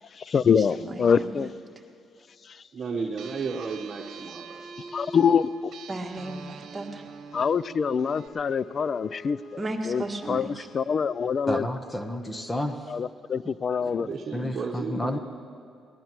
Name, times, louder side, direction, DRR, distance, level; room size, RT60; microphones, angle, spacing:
voice 1, 0.1-1.5 2.4-2.6 4.8-5.7 7.3-11.7 12.9-14.1, left 6 dB, 50° left, 0.4 m, -25 dB
voice 2, 2.7-4.6 13.8-15.2, right 5 dB, 45° right, 1.2 m, -33 dB
sound 1, 3.2-8.3, right 5 dB, 70° right, 1.1 m, -44 dB
voice 3, 5.9-7.0 9.6-10.7, right 2 dB, 25° right, 1.7 m, -34 dB
Wind instrument woodwind instrument, 7.9-12.5, left 1 dB, 65° left, 4.9 m, -48 dB
voice 4, 11.5-12.8 14.3-15.2, left 1 dB, 15° left, 1.0 m, -30 dB
23.0 x 18.5 x 3.0 m
cardioid pair, 90°, 0 cm